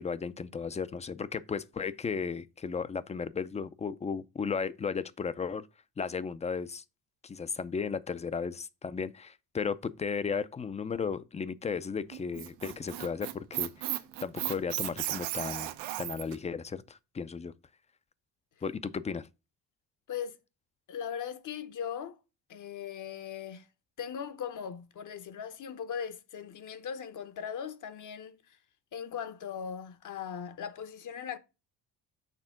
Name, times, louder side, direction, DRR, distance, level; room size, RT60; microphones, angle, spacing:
voice 1, 0.0-5.7 6.0-6.8 7.2-17.5 18.6-19.3, left 5 dB, 15° left, 0.4 m, -35 dB
Squeak, 12.1-16.4, right 14 dB, 85° right, 0.8 m, -35 dB
voice 2, 20.9-22.2 22.5-23.7 24.0-28.4 28.9-31.4, left 8 dB, 50° left, 0.8 m, -39 dB
6.7 x 3.5 x 5.7 m
cardioid pair, 105°, 40 cm